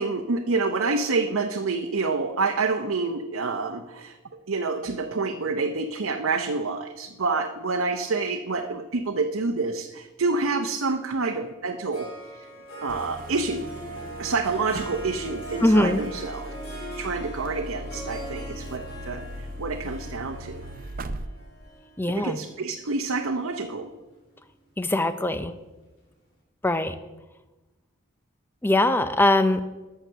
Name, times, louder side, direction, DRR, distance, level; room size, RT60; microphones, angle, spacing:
voice 1, 0.0-4.2 4.5-12.1 12.8-13.7 14.2-16.5 17.0-19.3 19.6-20.6 22.1-23.9, right 3 dB, 75° right, 3 dB, 0.7 m, -28 dB
Harp, 11.9-23.3, right 1 dB, 65° left, 3.6 m, -41 dB
sound 1, 12.9-21.3, right 1 dB, 40° right, 0.5 m, -39 dB
voice 2, 15.6-16.0 22.0-22.4 24.8-25.5 26.6-26.9 28.6-29.6, left 1 dB, 10° left, 10 dB, 0.5 m, -21 dB
12.5 x 6.5 x 6.8 m, 1.1 s
head